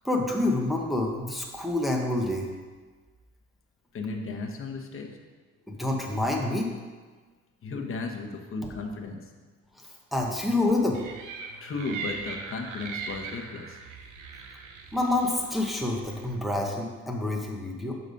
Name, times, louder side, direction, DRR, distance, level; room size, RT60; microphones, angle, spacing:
voice 1, 0.0-2.5 5.7-6.7 8.6-8.7 10.1-11.0 14.9-17.9, left 2 dB, ahead, -1 dB, 0.9 m, -27 dB
voice 2, 3.9-5.1 7.6-9.2 11.6-13.8, left 3 dB, 45° left, 3 dB, 1.0 m, -35 dB
sound 1, 10.9-16.4, right 5 dB, 85° right, 0.8 m, -40 dB
6.6 x 4.1 x 5.1 m, 1.4 s
cardioid pair, 90°, 30 cm